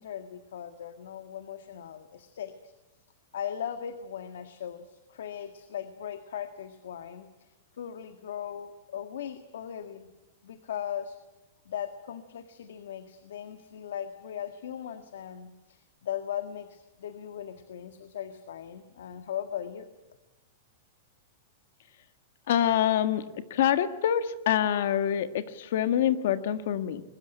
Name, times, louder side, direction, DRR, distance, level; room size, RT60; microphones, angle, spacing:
voice 1, 0.0-2.5 3.3-7.5 7.8-10.1 10.4-11.2 11.7-19.9, left 9 dB, 80° left, 8 dB, 1.7 m, -38 dB
voice 2, 22.5-23.2 23.5-27.0, left 10 dB, 55° left, 10 dB, 1.6 m, -26 dB
22.5 x 20.5 x 9.0 m, 1.0 s
supercardioid pair, 180°, 0 cm